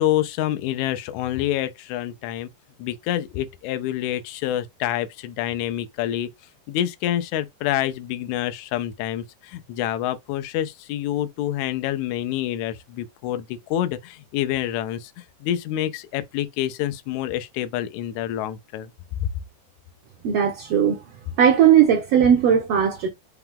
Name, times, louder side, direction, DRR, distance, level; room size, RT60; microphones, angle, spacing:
voice 1, 0.0-2.5 2.8-6.3 6.7-18.9 19.2-19.3, left 12 dB, 80° left, 1.8 m, -27 dB
voice 2, 20.2-21.0 21.4-23.1, right 8 dB, 70° right, 1.5 m, -17 dB
5.7 x 2.3 x 3.5 m
omnidirectional pair, 3.6 m